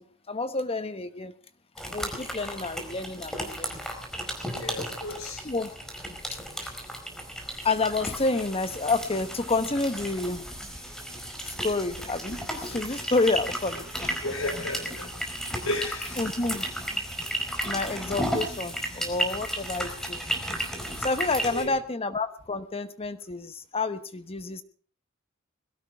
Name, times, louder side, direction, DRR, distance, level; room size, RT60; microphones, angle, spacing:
voice 1, 0.0-1.3 1.9-3.8 4.8-4.9 5.4-5.7 6.3-6.4 7.6-10.4 11.4-14.1 16.2-16.7 17.6-20.2 21.0-24.6, left 3 dB, 30° left, 1.1 m, -29 dB
sound 1, 1.7-21.6, right 1 dB, 5° left, 4.7 m, -34 dB
voice 2, 4.5-5.5 6.6-6.8 14.2-15.3 15.6-16.2 21.5-21.8, left 2 dB, 80° left, 5.2 m, -34 dB
21.5 x 17.5 x 3.6 m
head